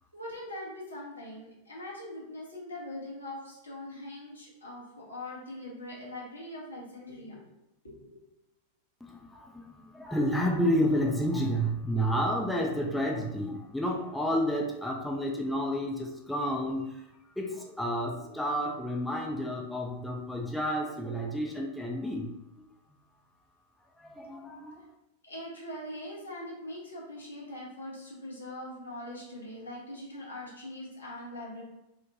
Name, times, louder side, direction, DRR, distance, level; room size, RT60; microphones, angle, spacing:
voice 1, 0.1-7.5 7.8-8.2 25.2-31.6, left 1 dB, 80° left, -4 dB, 0.8 m, -42 dB
voice 2, 9.0-16.9 17.4-22.4 24.0-24.8, equal, ahead, -1 dB, 0.4 m, -30 dB
3.0 x 2.1 x 2.6 m, 0.87 s
figure-of-eight pair, 90°, 0 cm